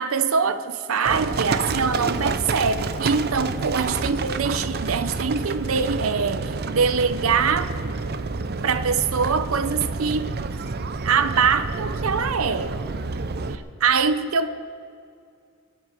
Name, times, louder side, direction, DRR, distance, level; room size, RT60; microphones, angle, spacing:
voice 1, 0.0-7.7 8.6-10.3 11.0-12.7 13.5-14.6, right 5 dB, 90° right, 10 dB, 0.7 m, -23 dB
Livestock farm animals working animals, 1.0-13.6, right 3 dB, 50° right, 0.6 m, -29 dB
22.0 x 7.9 x 6.0 m, 2.3 s
head